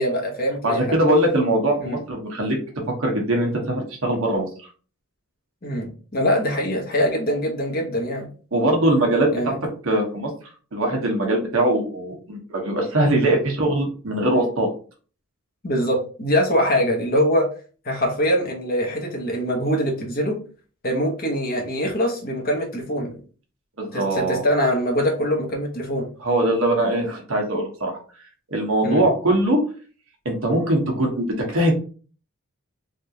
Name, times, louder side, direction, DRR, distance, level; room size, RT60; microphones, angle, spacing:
voice 1, 0.0-1.0 1.8-2.0 5.6-8.3 9.3-9.6 15.6-17.5 17.8-20.4 20.8-23.2 23.9-26.1 28.8-29.1, equal, 45° left, 0 dB, 0.9 m, -23 dB
voice 2, 0.6-2.6 3.0-4.5 8.5-9.6 9.8-10.3 10.7-14.7 23.8-24.4 26.2-28.0 28.5-29.6 30.2-31.7, right 1 dB, 70° right, 1 dB, 1.0 m, -21 dB
3.4 x 2.4 x 2.8 m, 0.39 s
head